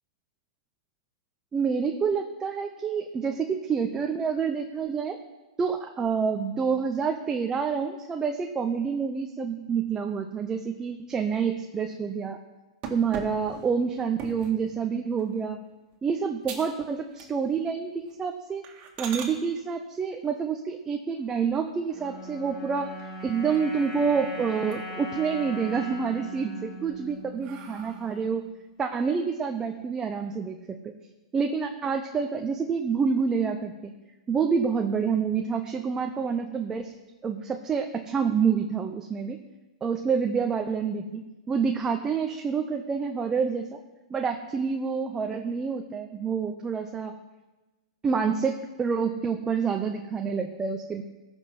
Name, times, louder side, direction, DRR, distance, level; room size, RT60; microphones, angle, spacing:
voice 1, 1.5-5.2 5.6-12.4 12.9-15.6 16.0-18.6 19.0-22.9 23.2-28.5 28.8-30.9 31.3-33.9 34.3-36.9 37.2-39.4 39.8-43.8 44.1-47.1 48.0-51.0, right 6 dB, 15° right, 5 dB, 0.7 m, -28 dB
sound 1, 12.8-14.6 15.2-15.5 15.9-16.0 16.4-16.8 17.1-17.6 18.0-18.1 18.6-19.3 21.3-22.0 22.5-22.6 23.0-23.1 23.4-24.2 24.5-25.1 25.5-26.2 26.7-28.4, right 5 dB, 35° right, 1.9 m, -42 dB
sound 2, 21.9-28.3, equal, 15° left, 4.4 m, -40 dB
14.5 x 5.3 x 6.1 m, 1.1 s
hypercardioid pair, 120°, 3 cm